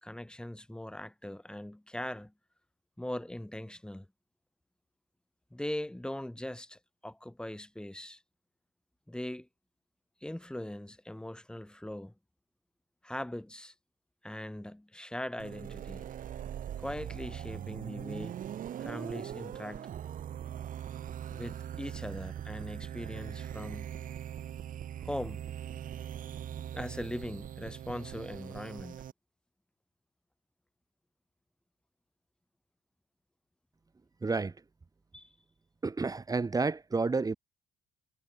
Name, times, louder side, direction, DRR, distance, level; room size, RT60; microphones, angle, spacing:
voice 1, 0.0-2.3 3.0-4.1 5.5-8.2 9.1-9.5 10.2-12.1 13.0-13.7 14.2-16.0 16.8-18.5 18.8-19.9 21.3-23.9 25.0-25.4 26.7-29.0 35.1-35.3, left 1 dB, 5° left, 5.3 m, -40 dB
sound 1, 15.4-29.1, right 10 dB, 55° right, 2.1 m, -41 dB
voice 2, 34.2-34.6 35.8-37.3, right 4 dB, 20° right, 3.5 m, -30 dB
cardioid pair, 110°, 17 cm